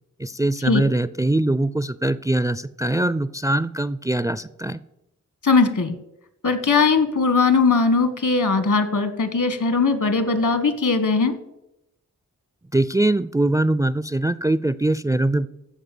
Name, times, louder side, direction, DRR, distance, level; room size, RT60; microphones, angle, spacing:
voice 1, 0.2-4.8 12.7-15.5, right 2 dB, 10° right, 16 dB, 0.4 m, -22 dB
voice 2, 5.4-6.0 6.4-11.4, left 4 dB, 70° left, 10 dB, 1.5 m, -19 dB
15.0 x 5.1 x 7.7 m, 0.87 s
wide cardioid pair, 80°, 32 cm